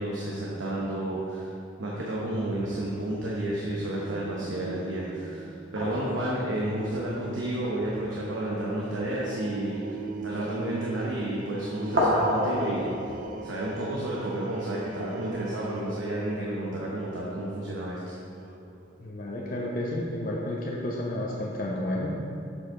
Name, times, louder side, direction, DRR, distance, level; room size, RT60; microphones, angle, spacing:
voice 1, 0.0-1.5 1.8-9.8 10.2-12.9 13.4-18.0, right 1 dB, 85° right, -5 dB, 0.9 m, -31 dB
sound 1, 2.5-3.7 5.8-8.0 8.9-9.0 9.3-10.1 11.0-11.4 11.7-13.5, equal, 65° right, 1.5 m, -31 dB
sound 2, 3.7-19.1, right 3 dB, 45° right, 0.4 m, -41 dB
voice 2, 19.0-22.2, left 1 dB, 50° left, -3 dB, 0.7 m, -31 dB
7.1 x 4.9 x 3.8 m, 2.6 s
head